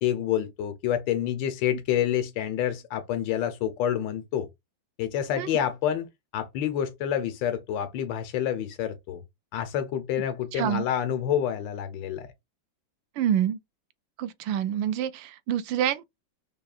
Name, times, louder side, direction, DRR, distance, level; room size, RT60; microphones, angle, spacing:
voice 1, 0.0-4.5 5.0-6.1 6.3-9.2 9.5-12.3, left 10 dB, 85° left, 1.4 m, -28 dB
voice 2, 10.5-10.9 13.2-13.6 14.2-16.0, right 10 dB, 80° right, 1.3 m, -27 dB
4.8 x 2.9 x 2.4 m
omnidirectional pair, 2.0 m